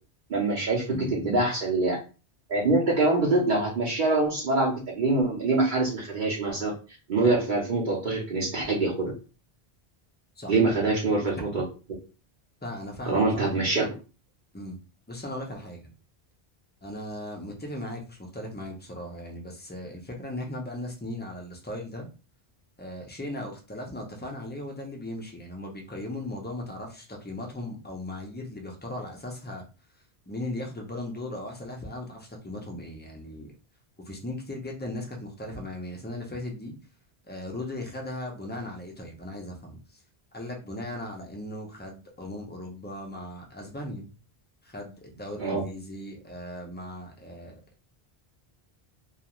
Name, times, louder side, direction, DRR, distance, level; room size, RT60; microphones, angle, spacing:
voice 1, 0.3-2.0 2.5-6.7 7.1-9.1 10.5-11.6 13.1-13.9 45.4-45.6, right 2 dB, 55° right, -3 dB, 0.8 m, -24 dB
voice 2, 0.8-1.4 10.4-10.6 12.6-13.6 14.5-14.8 15.1-15.9 16.8-22.1 22.8-29.6 30.3-33.5 34.0-36.7 37.3-40.0 40.3-44.1 44.6-47.6, left 1 dB, 15° left, 0 dB, 0.3 m, -37 dB
2.4 x 2.3 x 2.9 m, 0.33 s
omnidirectional pair, 1.1 m